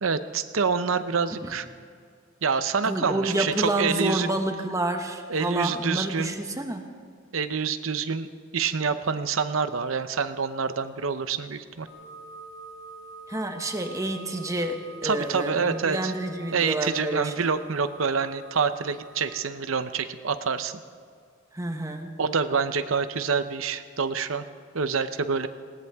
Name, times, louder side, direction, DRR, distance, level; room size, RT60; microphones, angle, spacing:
voice 1, 0.0-1.7 2.4-4.3 5.3-6.3 7.3-8.3 8.5-11.9 15.0-16.1 16.5-20.8 22.2-24.4 24.7-25.5, right 5 dB, 90° right, 11 dB, 0.8 m, -27 dB
voice 2, 2.8-6.8 13.3-17.5 21.5-22.1, right 1 dB, 15° right, 5 dB, 1.2 m, -29 dB
sound 1, 11.9-19.3, right 3 dB, 70° left, 1.8 m, -46 dB
20.0 x 18.0 x 3.6 m, 2.1 s
head